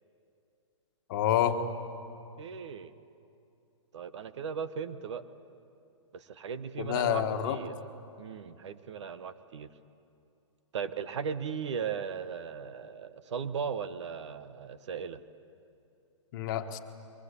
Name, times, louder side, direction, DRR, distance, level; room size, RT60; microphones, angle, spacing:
voice 1, 1.1-1.6 6.8-7.6 16.3-16.8, left 11 dB, 40° left, 6 dB, 1.6 m, -28 dB
voice 2, 2.4-2.9 3.9-5.2 6.1-7.7 8.2-9.7 10.7-15.2, right 6 dB, 65° right, 12 dB, 1.3 m, -37 dB
24.5 x 23.5 x 8.4 m, 2.7 s
hypercardioid pair, 155°, 16 cm